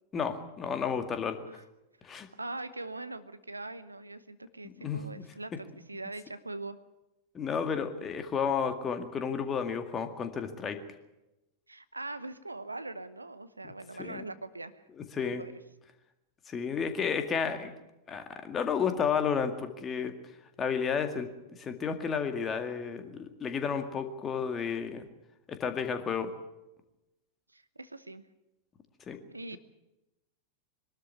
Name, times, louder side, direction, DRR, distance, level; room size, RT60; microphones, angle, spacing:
voice 1, 0.1-1.4 2.0-2.3 4.6-5.0 7.3-10.8 13.6-13.7 14.0-14.2 15.1-15.4 16.5-17.7 18.1-20.1 20.6-21.3 21.6-25.1 25.5-26.3 29.1-29.2, left 6 dB, 25° left, 7 dB, 2.1 m, -32 dB
voice 2, 2.4-6.8 11.7-14.8 15.2-15.6 27.5-28.2 29.3-29.6, right 2 dB, 80° right, 13 dB, 0.9 m, -42 dB
22.5 x 13.0 x 9.6 m, 0.97 s
figure-of-eight pair, 90°, 0 cm